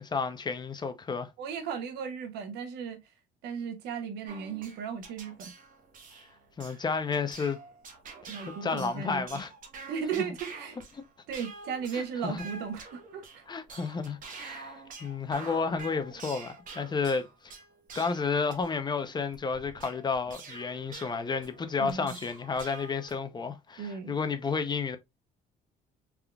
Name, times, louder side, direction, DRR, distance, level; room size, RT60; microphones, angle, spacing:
voice 1, 0.0-1.3 6.6-7.6 8.6-9.5 11.9-12.4 13.5-14.8 15.0-17.5 17.9-25.0, left 5 dB, 25° left, 0.6 m, -31 dB
voice 2, 1.4-3.0 3.4-5.5 8.3-9.3 9.9-10.8 11.3-13.4 21.8-22.1 23.8-24.1, right 7 dB, 85° right, 0.9 m, -36 dB
sound 1, 4.3-23.2, right 4 dB, 55° right, 1.1 m, -47 dB
3.5 x 3.5 x 2.3 m
cardioid pair, 110°, 17 cm